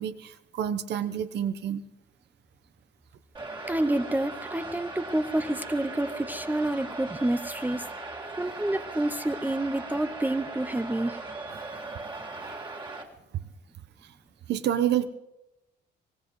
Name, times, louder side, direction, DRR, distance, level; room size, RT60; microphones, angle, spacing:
voice 1, 0.0-1.8 12.4-12.6 14.5-15.0, right 10 dB, 70° right, 10 dB, 1.0 m, -28 dB
sound 1, 3.3-13.0, right 2 dB, 25° right, 2.1 m, -39 dB
voice 2, 3.7-7.9 8.4-11.2, right 1 dB, 10° right, 10 dB, 0.7 m, -28 dB
24.0 x 18.0 x 3.2 m, 0.93 s
cardioid pair, 100°, 18 cm